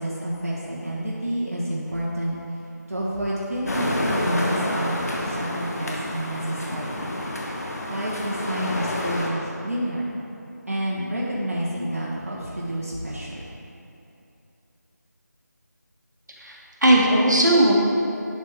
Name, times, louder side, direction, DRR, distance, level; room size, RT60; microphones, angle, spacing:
voice 1, 0.0-2.4 2.9-7.1 7.9-10.1 10.7-13.5, right 1 dB, 55° right, -6 dB, 1.2 m, -29 dB
sound 1, 3.7-9.3, left 1 dB, 60° left, 1.2 m, -29 dB
voice 2, 16.4-17.7, right 1 dB, 75° right, -3 dB, 1.5 m, -18 dB
11.0 x 4.8 x 3.4 m, 2.8 s
figure-of-eight pair, 170°, 10 cm